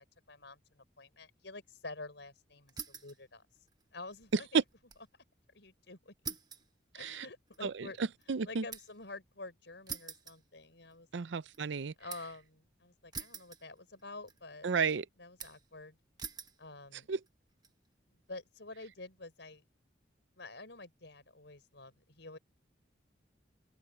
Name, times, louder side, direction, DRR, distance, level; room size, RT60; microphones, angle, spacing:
voice 1, 0.0-3.4 3.9-4.6 5.5-6.4 6.9-8.0 8.3-11.1 12.0-14.7 15.2-16.0 16.6-17.1 18.1-19.6 20.4-22.4, left 2 dB, 70° left, 4.6 m, -49 dB
sound 1, 2.7-3.2 3.6-5.1 5.4-5.5 6.2-9.1 9.9-11.0 11.4-12.4 13.1-14.0 14.3-14.9 15.4-15.8 16.2-16.6 17.3-17.7, right 6 dB, 20° right, 1.2 m, -46 dB
voice 2, 8.3-8.6 11.1-11.9 14.6-15.1 17.1-17.2, right 5 dB, 75° right, 0.5 m, -33 dB
open air
head